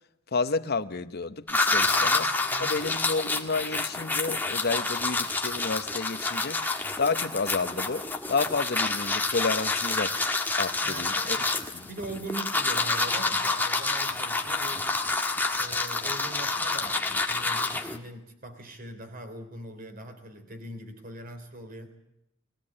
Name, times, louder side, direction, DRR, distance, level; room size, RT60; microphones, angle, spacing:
voice 1, 0.3-2.3 2.6-10.1 10.6-11.4 11.7-11.9, left 4 dB, 50° left, 1.0 m, -30 dB
sound 1, 1.5-18.0, left 3 dB, 10° left, 1.7 m, -28 dB
voice 2, 1.8-2.8 10.8-11.5 11.8-15.0 15.6-21.9, right 1 dB, 45° right, 3.4 m, -41 dB
22.5 x 16.5 x 8.6 m
head